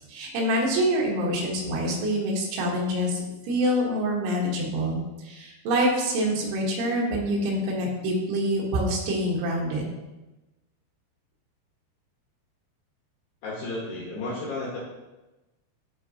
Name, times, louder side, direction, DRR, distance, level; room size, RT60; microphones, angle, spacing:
voice 1, 0.1-9.8, equal, 80° right, -2 dB, 3.6 m, -26 dB
voice 2, 13.4-14.8, left 2 dB, 70° left, -4 dB, 2.3 m, -33 dB
11.5 x 4.4 x 2.8 m, 1.0 s
omnidirectional pair, 5.3 m